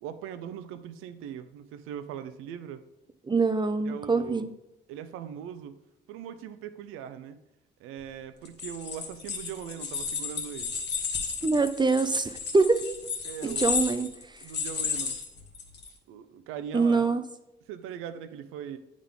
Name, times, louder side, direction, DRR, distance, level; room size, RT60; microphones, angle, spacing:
voice 1, 0.0-2.8 3.8-4.5 4.9-5.8 6.1-7.4 7.8-10.8 13.2-13.7 14.4-15.2 16.1-17.1 17.7-18.8, right 9 dB, 90° right, 11 dB, 0.5 m, -40 dB
voice 2, 3.3-4.5 11.4-12.8 13.4-14.1 16.7-17.2, right 4 dB, 20° right, 10 dB, 0.5 m, -24 dB
sound 1, 8.4-15.9, left 6 dB, 55° left, 1.1 m, -33 dB
8.6 x 3.7 x 3.7 m, 0.87 s
supercardioid pair, 60°, 21 cm